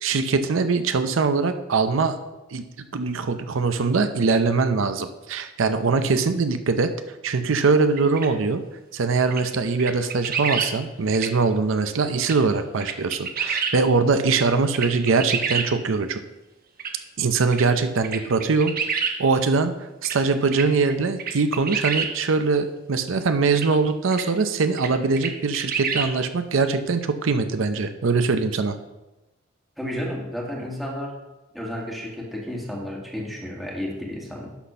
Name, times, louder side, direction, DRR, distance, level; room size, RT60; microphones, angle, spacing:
voice 1, 0.0-2.2 2.5-8.6 8.9-16.2 17.2-18.7 19.2-19.7 20.0-28.8, right 4 dB, 85° right, 9 dB, 0.6 m, -22 dB
sound 1, 8.0-8.3 9.3-9.4 9.8-10.7 11.1-11.3 12.2-12.4 12.8-13.7 14.3-14.4 14.7-15.7 16.8-16.9 17.5-17.6 18.0-19.1 20.0-20.2 20.5-20.9 21.2-22.1 23.6-23.7 24.1-24.2 24.8-24.9 25.2-26.1, right 6 dB, 50° right, 1.1 m, -27 dB
voice 2, 29.8-31.2 31.5-34.5, equal, ahead, -3 dB, 1.8 m, -32 dB
11.5 x 4.2 x 5.7 m, 1.0 s
head